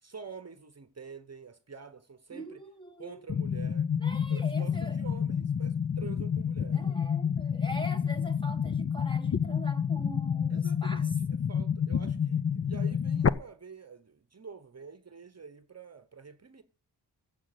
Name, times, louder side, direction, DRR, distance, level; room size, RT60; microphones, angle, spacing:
voice 1, 0.0-2.6 3.0-3.9 4.3-7.0 10.5-16.6, right 5 dB, 40° right, 1.0 m, -47 dB
voice 2, 2.3-3.2 4.0-5.0 6.7-11.1, right 1 dB, 10° left, 1.4 m, -43 dB
sound 1, 3.3-13.3, left 7 dB, 35° left, 0.5 m, -29 dB
15.0 x 7.7 x 6.7 m
wide cardioid pair, 110°, 41 cm